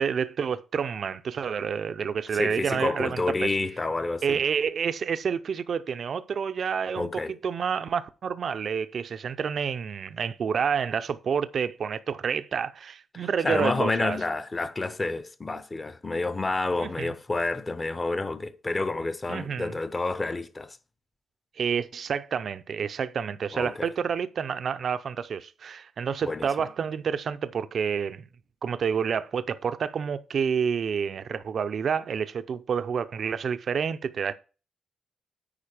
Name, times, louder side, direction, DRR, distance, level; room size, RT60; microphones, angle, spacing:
voice 1, 0.0-3.6 4.2-14.2 16.8-17.1 19.3-19.8 21.6-28.2 28.6-34.3, right 7 dB, 60° right, 0.5 m, -29 dB
voice 2, 2.3-4.4 7.0-7.3 13.1-20.8 23.5-23.9 26.2-26.7, left 3 dB, 25° left, 0.8 m, -29 dB
8.7 x 5.0 x 5.0 m
cardioid pair, 100°, 0 cm